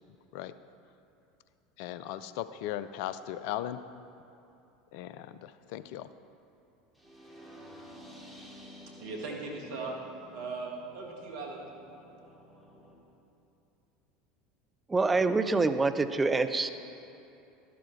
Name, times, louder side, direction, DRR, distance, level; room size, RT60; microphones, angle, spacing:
voice 1, 1.8-3.8 4.9-6.1, left 12 dB, 60° left, 13 dB, 0.4 m, -37 dB
sound 1, 7.0-12.9, equal, ahead, 2.4 m, -52 dB
voice 2, 9.0-9.9 10.3-11.7, right 3 dB, 60° right, -1 dB, 1.8 m, -38 dB
voice 3, 14.9-16.7, right 3 dB, 15° right, 9 dB, 0.5 m, -26 dB
12.0 x 12.0 x 3.2 m, 2.8 s
figure-of-eight pair, 75°, 0 cm